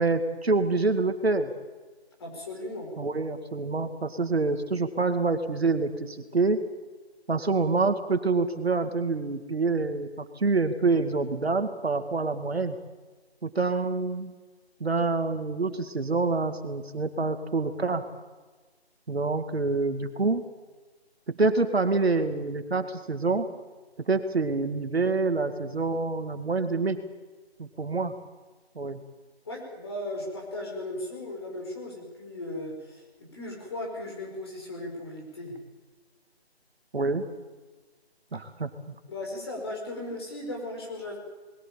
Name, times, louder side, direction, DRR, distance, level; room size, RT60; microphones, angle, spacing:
voice 1, 0.0-1.5 3.0-6.6 7.3-12.8 13.4-14.3 14.8-18.1 19.1-20.4 21.3-23.5 24.1-27.0 27.6-28.1 28.8-29.0 36.9-37.3 38.3-38.9, right 3 dB, 70° right, 8 dB, 2.2 m, -26 dB
voice 2, 2.2-2.9 29.5-35.6 39.1-41.2, left 1 dB, 25° left, -1 dB, 5.1 m, -37 dB
21.0 x 16.0 x 8.9 m, 1.3 s
figure-of-eight pair, 175°, 33 cm